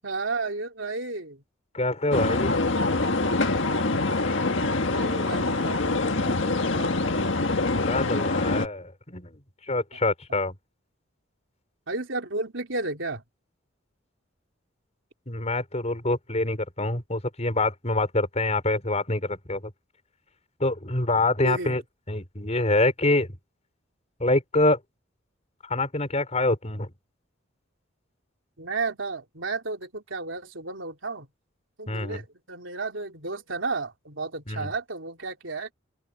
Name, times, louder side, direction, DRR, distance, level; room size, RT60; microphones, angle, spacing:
voice 1, 0.0-1.4 3.7-3.8 4.9-6.9 11.9-13.2 21.4-21.8 28.6-31.3 31.8-35.7, right 3 dB, 70° right, 3.9 m, -33 dB
voice 2, 1.7-2.5 7.8-9.4 9.7-10.5 15.3-19.7 20.6-21.8 22.1-23.3 24.2-24.8 25.7-26.9 31.9-32.2 34.5-34.7, left 2 dB, 35° left, 5.4 m, -25 dB
sound 1, 2.1-8.7, left 2 dB, 65° left, 1.7 m, -25 dB
open air
head